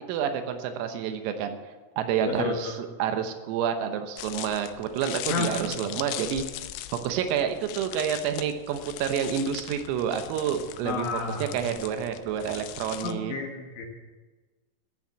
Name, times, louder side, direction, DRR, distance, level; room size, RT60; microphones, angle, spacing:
voice 1, 0.1-1.6 2.0-2.7 3.0-6.5 7.0-13.3, right 8 dB, 90° right, 7 dB, 3.8 m, -29 dB
voice 2, 2.3-2.7 5.3-5.9 10.9-11.6 13.0-13.9, left 4 dB, 70° left, 1 dB, 3.5 m, -31 dB
sound 1, 4.2-13.1, left 13 dB, 90° left, 2.6 m, -39 dB
16.0 x 7.4 x 7.9 m, 1.2 s
omnidirectional pair, 5.9 m